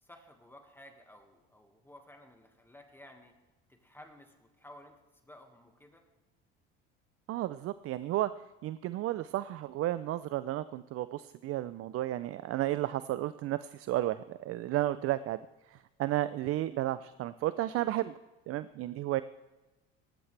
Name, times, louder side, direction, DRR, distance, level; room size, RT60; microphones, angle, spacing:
voice 1, 0.0-3.3 3.7-6.0, left 1 dB, 5° left, 4 dB, 1.7 m, -55 dB
voice 2, 7.3-8.3 8.6-15.4 15.7-18.1 18.5-19.2, right 14 dB, 50° right, 15 dB, 0.5 m, -33 dB
17.5 x 15.0 x 3.4 m, 1.1 s
supercardioid pair, 85°, 30 cm